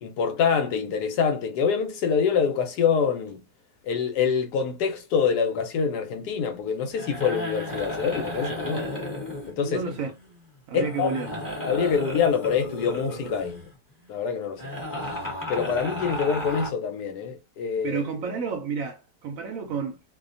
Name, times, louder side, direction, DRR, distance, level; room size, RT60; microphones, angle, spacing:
voice 1, 0.0-3.4 3.8-8.9 9.5-9.8 10.7-11.2 11.6-13.7 14.1-14.6 15.5-18.0, left 6 dB, 75° left, 1.1 m, -25 dB
sound 1, 6.9-10.4 10.7-13.7 14.6-16.7, left 1 dB, 15° left, 0.8 m, -34 dB
voice 2, 9.6-10.1 10.7-11.4 17.8-20.0, right 6 dB, 70° right, 0.8 m, -31 dB
2.7 x 2.1 x 2.5 m
omnidirectional pair, 1.8 m